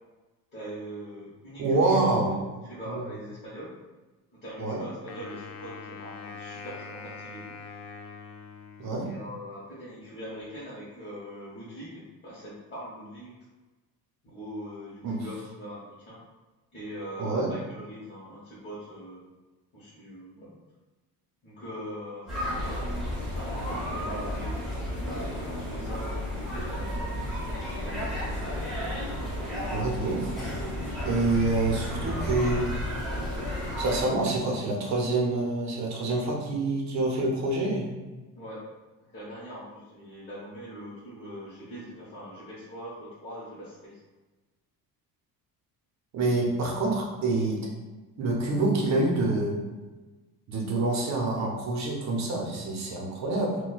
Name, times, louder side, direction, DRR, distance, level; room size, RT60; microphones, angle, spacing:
voice 1, 0.5-3.7 4.3-7.5 9.0-13.4 14.2-16.2 16.7-19.2 19.7-20.5 21.4-27.1 27.7-28.4 38.3-38.6 39.1-44.0, equal, 30° left, -11 dB, 1.0 m, -42 dB
voice 2, 1.6-2.4 2.9-3.0 4.6-4.8 8.8-9.1 15.0-15.2 17.2-17.5 29.7-30.3 31.0-32.7 33.8-37.9 46.1-47.7 48.2-49.6 50.5-53.5, right 2 dB, 50° right, -1 dB, 0.7 m, -26 dB
Wind instrument woodwind instrument, 5.1-9.4, left 5 dB, 70° left, 0.5 m, -43 dB
sound 1, 22.3-34.0, left 1 dB, ahead, 0.9 m, -32 dB
4.1 x 2.2 x 2.4 m, 1.2 s
cardioid pair, 140°, 36 cm